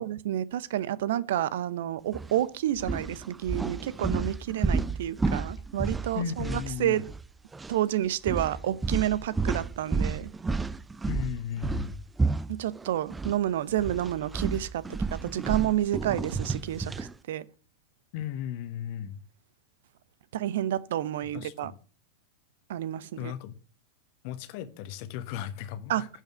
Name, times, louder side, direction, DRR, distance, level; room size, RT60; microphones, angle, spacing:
voice 1, 0.0-6.5 6.8-7.0 7.7-10.3 12.5-17.5 20.3-21.7 22.7-23.3 25.9-26.0, right 12 dB, 55° right, 0.7 m, -29 dB
sound 1, 2.1-2.3 2.8-7.3 7.5-7.7 8.3-13.4 13.7-17.1, right 4 dB, 10° right, 0.5 m, -31 dB
voice 2, 6.1-7.0 11.1-12.0 18.1-19.2 21.3-21.8 23.2-23.5 24.2-26.1, left 9 dB, 45° left, 1.3 m, -35 dB
11.0 x 5.6 x 8.1 m
figure-of-eight pair, 90°, 0 cm